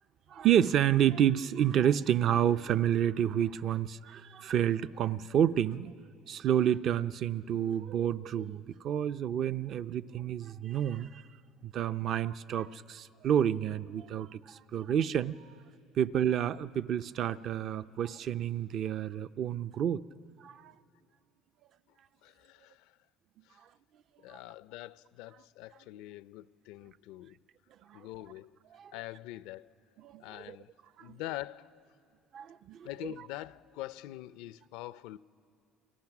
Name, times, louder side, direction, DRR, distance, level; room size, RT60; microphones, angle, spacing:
voice 1, 0.3-5.9 6.3-11.2 11.6-15.6 16.0-20.0 20.4-20.7 27.9-28.0 28.7-28.9 30.0-30.6 31.0-31.2 32.3-33.1, right 10 dB, 50° right, 0.5 m, -29 dB
voice 2, 22.2-22.9 23.5-23.6 24.2-27.4 27.9-28.5 28.9-29.7 30.2-30.7 31.0-31.8 32.8-35.2, left 15 dB, 85° left, 0.5 m, -44 dB
30.0 x 23.0 x 6.0 m
cardioid pair, 125°, 0 cm